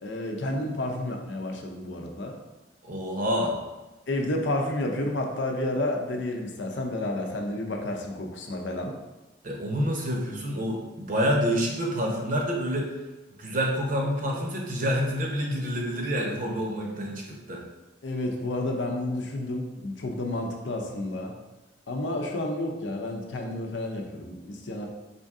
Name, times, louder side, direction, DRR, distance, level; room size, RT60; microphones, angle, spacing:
voice 1, 0.0-2.4 4.1-8.9 18.0-21.3 21.9-24.9, left 1 dB, 80° left, 2 dB, 0.6 m, -30 dB
voice 2, 2.8-3.6 9.4-12.9 13.4-17.6, equal, 50° right, 0 dB, 0.8 m, -27 dB
4.3 x 2.7 x 3.6 m, 1.1 s
head